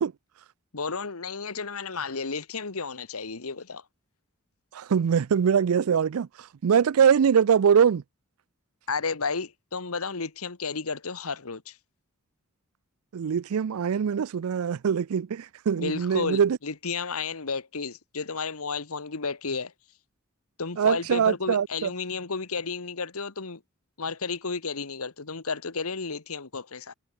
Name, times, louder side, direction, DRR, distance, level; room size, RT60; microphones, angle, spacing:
voice 1, 0.7-3.8 8.9-11.8 15.8-19.7 20.6-23.6 24.0-26.9, left 4 dB, 80° left, 1.5 m, -32 dB
voice 2, 4.7-8.0 13.1-16.6 20.8-21.9, right 7 dB, 75° right, 0.4 m, -23 dB
head